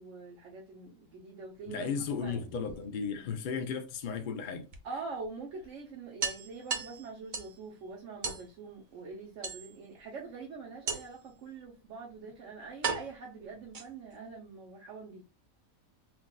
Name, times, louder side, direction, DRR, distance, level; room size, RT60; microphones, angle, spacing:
voice 1, 0.0-1.9 2.2-2.4 4.8-15.3, right 4 dB, 65° right, 1.2 m, -44 dB
voice 2, 1.7-4.7, left 6 dB, 55° left, 0.5 m, -35 dB
sound 1, 2.2-3.2 4.7-4.8 5.2-5.3 5.6-5.7 6.2-7.6 8.2-8.5 9.4-10.0 10.9-11.3 12.1-12.2 12.8-14.2, right 5 dB, 45° right, 0.8 m, -37 dB
5.8 x 2.5 x 2.3 m
omnidirectional pair, 1.4 m